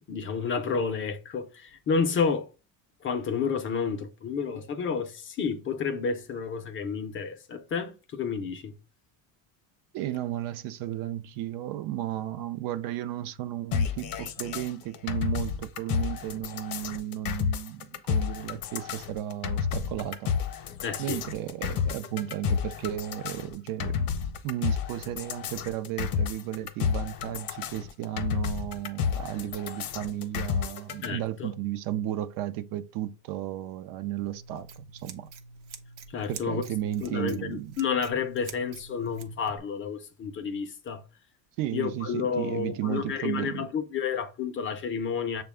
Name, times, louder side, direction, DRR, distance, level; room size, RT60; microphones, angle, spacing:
voice 1, 0.1-2.5 3.0-8.7 20.8-21.2 31.0-31.5 36.1-36.6 37.0-41.0 41.7-45.4, left 6 dB, 30° left, 0.5 m, -30 dB
voice 2, 9.9-20.3 21.0-24.1 24.4-35.3 36.3-37.8 41.6-43.7, right 12 dB, 55° right, 0.5 m, -34 dB
sound 1, 13.7-31.1, left 7 dB, 55° left, 0.8 m, -31 dB
Scissors, 34.2-39.6, right 5 dB, 90° right, 0.8 m, -47 dB
6.6 x 2.2 x 3.5 m
cardioid pair, 130°, 41 cm